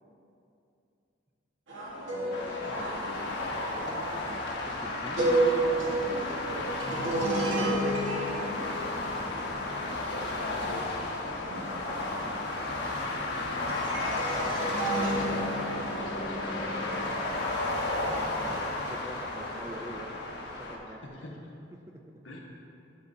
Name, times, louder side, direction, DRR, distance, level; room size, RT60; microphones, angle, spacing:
sound 1, 1.7-13.3 13.7-17.0, right 1 dB, 80° right, 1.3 m, -32 dB
voice 1, 2.0-3.9 10.1-11.0 14.5-17.9 20.9-21.4 22.2-22.4, left 1 dB, 75° left, -1 dB, 1.1 m, -43 dB
sound 2, 2.3-20.8, left 2 dB, 60° left, 1.1 m, -33 dB
voice 2, 2.7-3.1 4.3-5.2 6.0-6.7 7.1-7.8 8.1-8.7 11.6-12.7 15.4-15.6 17.9-20.1 20.4-21.0, right 1 dB, 15° right, 2 dB, 0.3 m, -44 dB
11.5 x 5.4 x 2.7 m, 2.7 s
head